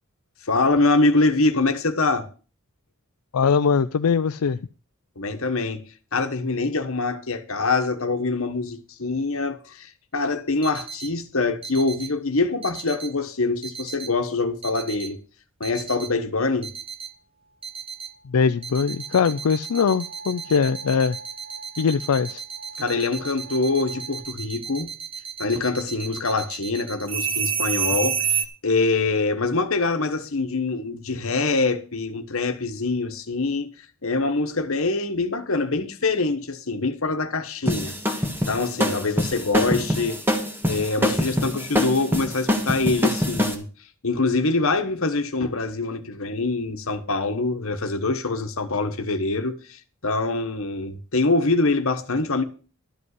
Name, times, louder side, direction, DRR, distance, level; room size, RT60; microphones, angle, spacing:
voice 1, 0.4-2.3 5.2-5.8 6.1-15.2 15.6-16.7 22.8-24.9 25.4-33.7 34.0-37.9 38.5-40.2 40.6-43.7 44.0-52.4, left 3 dB, 65° left, 1.3 m, -24 dB
voice 2, 3.3-4.6 18.3-21.2 21.8-22.4, left 6 dB, 85° left, 0.5 m, -21 dB
sound 1, 10.6-11.1 11.6-12.1 12.6-13.1 13.6-14.1 14.6-15.1 15.6-16.1 16.6-17.1 17.6-18.1 18.6-28.5, right 7 dB, 25° right, 1.1 m, -30 dB
sound 2, 17.1-24.2, right 2 dB, 65° right, 7.1 m, -45 dB
sound 3, 37.7-43.5, left 1 dB, 10° right, 1.6 m, -24 dB
12.5 x 5.2 x 8.2 m
head